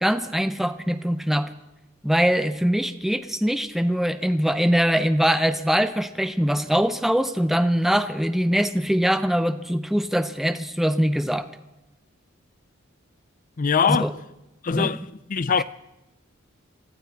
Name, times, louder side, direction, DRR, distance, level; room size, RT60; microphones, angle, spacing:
voice 1, 0.0-1.5 2.0-11.5 13.9-14.1 14.7-15.0 15.6-15.7, equal, ahead, 0.6 m, -22 dB
voice 2, 13.6-14.1 14.6-15.0 15.3-15.6, left 6 dB, 40° left, 0.5 m, -22 dB
24.0 x 15.0 x 4.0 m
head